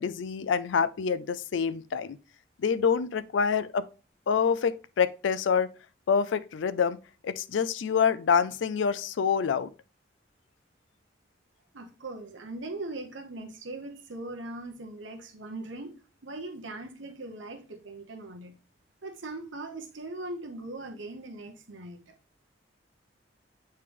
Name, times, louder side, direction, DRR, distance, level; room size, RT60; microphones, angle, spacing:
voice 1, 0.0-2.2 2.6-3.8 4.3-5.7 6.1-7.0 7.2-9.7, left 6 dB, 80° left, 0.4 m, -26 dB
voice 2, 11.7-16.0 16.2-18.5 19.0-22.1, right 2 dB, 80° right, 0.9 m, -40 dB
8.4 x 3.4 x 3.3 m
head